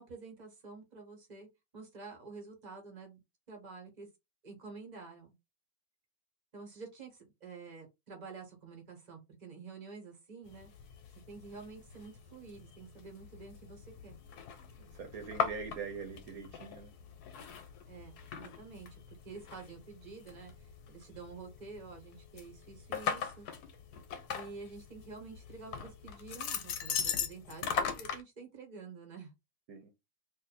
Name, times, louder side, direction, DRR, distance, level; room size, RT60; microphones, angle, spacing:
voice 1, 0.0-1.5 1.7-3.2 3.5-4.1 4.4-5.3 6.5-10.7 11.3-14.1 17.9-23.5 24.3-29.3, right 4 dB, 30° right, 1.3 m, -49 dB
sound 1, 10.5-28.2, left 7 dB, 90° left, 1.2 m, -40 dB
voice 2, 14.8-16.9 29.7-29.9, right 5 dB, 75° right, 1.2 m, -43 dB
2.6 x 2.6 x 4.0 m
omnidirectional pair, 1.6 m